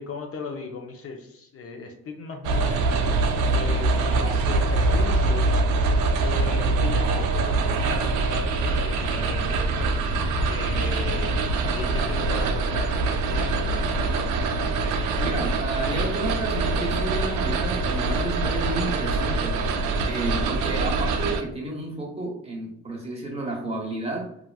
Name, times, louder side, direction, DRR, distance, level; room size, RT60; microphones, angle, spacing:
voice 1, 0.0-5.6 6.2-11.5 11.7-13.8 14.1-14.4, left 4 dB, 50° left, 2 dB, 0.6 m, -37 dB
sound 1, 2.4-21.4, right 3 dB, 85° right, 0.4 m, -24 dB
voice 2, 15.2-19.6 20.1-24.3, right 2 dB, 20° right, -2 dB, 0.9 m, -31 dB
3.3 x 2.3 x 2.3 m, 0.70 s
cardioid pair, 90°, 30 cm